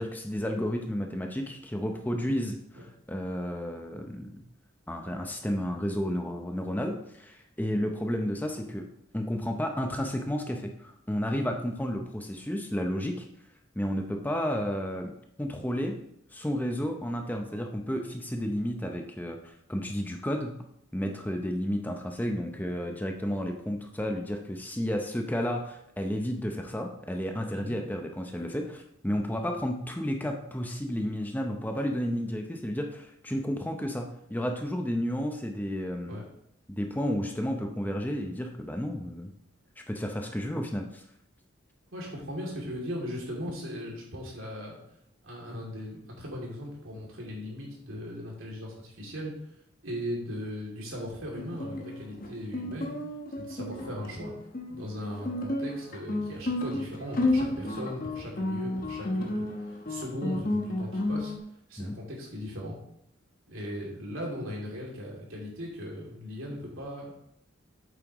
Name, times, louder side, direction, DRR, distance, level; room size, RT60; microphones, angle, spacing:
voice 1, 0.0-2.6 3.1-4.3 4.9-8.9 9.1-13.3 13.8-15.1 15.4-15.9 16.3-19.4 19.7-20.5 20.9-36.2 36.7-39.3 39.8-41.0 61.8-61.9, equal, 10° left, 3 dB, 0.6 m, -32 dB
voice 2, 41.9-44.8 45.2-49.3 49.8-52.9 53.4-54.3 54.7-61.3 61.7-62.8 63.5-67.1, equal, 80° right, -2 dB, 2.7 m, -38 dB
Guitar, 51.4-61.4, left 2 dB, 40° left, 1.1 m, -32 dB
8.3 x 7.4 x 3.0 m, 0.74 s
head